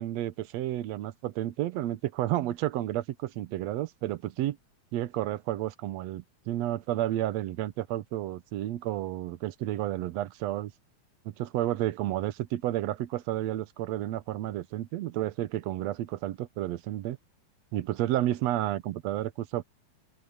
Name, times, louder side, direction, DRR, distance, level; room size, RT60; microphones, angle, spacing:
voice 1, 0.0-4.6 4.9-10.7 11.3-17.2 17.7-19.6, right 14 dB, 70° right, 1.9 m, -31 dB
open air
omnidirectional pair, 3.5 m